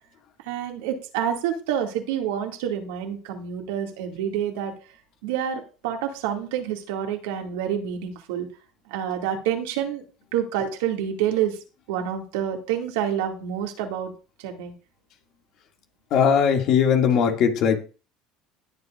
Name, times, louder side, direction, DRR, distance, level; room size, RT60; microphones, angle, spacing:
voice 1, 0.4-4.7 5.2-8.5 8.9-10.0 10.3-11.6 11.9-14.1 14.4-14.7, right 9 dB, 75° right, 2 dB, 2.2 m, -28 dB
voice 2, 16.1-17.8, left 7 dB, 60° left, 3 dB, 2.2 m, -19 dB
19.5 x 7.7 x 2.5 m, 0.35 s
hypercardioid pair, 75°, 0 cm